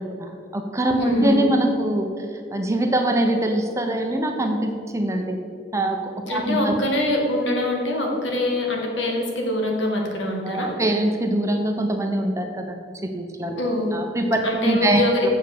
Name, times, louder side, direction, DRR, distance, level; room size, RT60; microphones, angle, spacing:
voice 1, 0.0-2.3 2.5-5.4 5.7-6.7 10.4-13.6 13.9-15.3, right 1 dB, 15° right, 3 dB, 0.8 m, -23 dB
voice 2, 1.0-1.4 6.3-10.7 13.6-13.9 14.4-15.3, left 1 dB, 85° left, 0 dB, 2.0 m, -24 dB
7.7 x 6.7 x 6.8 m, 2.4 s
head